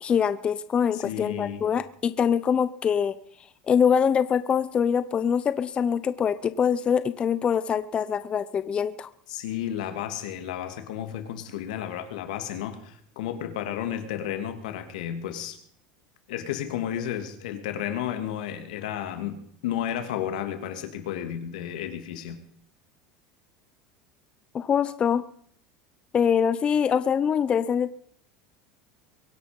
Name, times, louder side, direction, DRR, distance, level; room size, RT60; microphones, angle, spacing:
voice 1, 0.0-3.1 3.7-9.1 24.5-25.2 26.1-28.0, left 7 dB, 25° left, 14 dB, 0.7 m, -24 dB
voice 2, 0.9-1.6 9.3-15.6 16.3-22.4, left 10 dB, 90° left, 7 dB, 2.9 m, -32 dB
23.5 x 11.0 x 5.4 m, 0.65 s
supercardioid pair, 140°, 4 cm